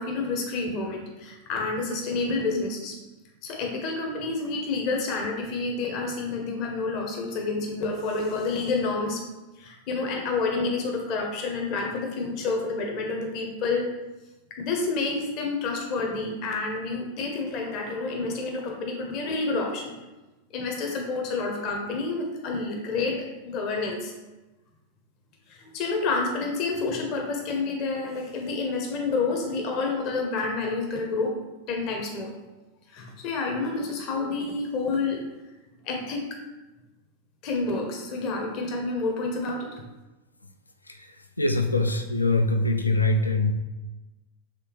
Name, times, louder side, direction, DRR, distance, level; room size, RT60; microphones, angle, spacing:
voice 1, 0.0-3.0 3.4-9.2 9.6-13.9 14.5-20.0 20.5-24.1 25.5-31.3 31.7-32.4 32.9-35.2 35.8-36.2 37.4-39.8, left 3 dB, 40° left, 1 dB, 0.7 m, -29 dB
voice 2, 41.4-43.5, left 2 dB, 80° left, 6 dB, 0.4 m, -23 dB
4.9 x 3.4 x 3.0 m, 1.1 s
figure-of-eight pair, 90°, 0 cm